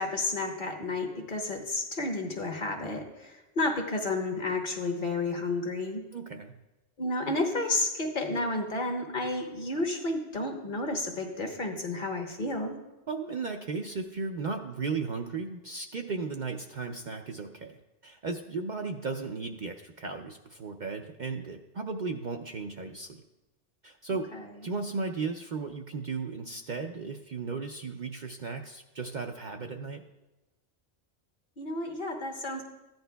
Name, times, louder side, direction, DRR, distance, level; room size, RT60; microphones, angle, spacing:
voice 1, 0.0-6.0 7.0-12.8 24.3-24.5 31.6-32.6, left 2 dB, 45° left, 3 dB, 1.2 m, -31 dB
voice 2, 6.1-6.6 13.1-23.2 23.8-24.3 24.6-30.0, right 4 dB, 50° right, 4 dB, 0.6 m, -35 dB
14.5 x 10.5 x 2.3 m, 1.0 s
omnidirectional pair, 1.2 m